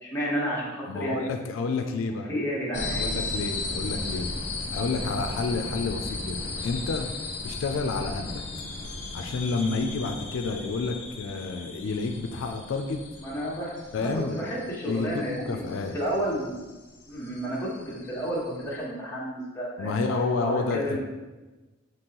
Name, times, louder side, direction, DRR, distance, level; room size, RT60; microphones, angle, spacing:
voice 1, 0.0-1.3 2.1-3.1 13.2-15.6 15.9-16.6 17.1-19.9 20.4-21.0, equal, 15° left, -7 dB, 1.2 m, -31 dB
voice 2, 0.9-2.3 2.9-4.3 4.7-7.1 7.4-8.4 9.1-13.0 13.9-14.4 14.8-15.9 19.8-21.0, left 4 dB, 85° left, 5 dB, 0.4 m, -30 dB
sound 1, 2.7-18.8, left 3 dB, 60° left, 0.9 m, -36 dB
5.3 x 3.0 x 2.9 m, 1.2 s
head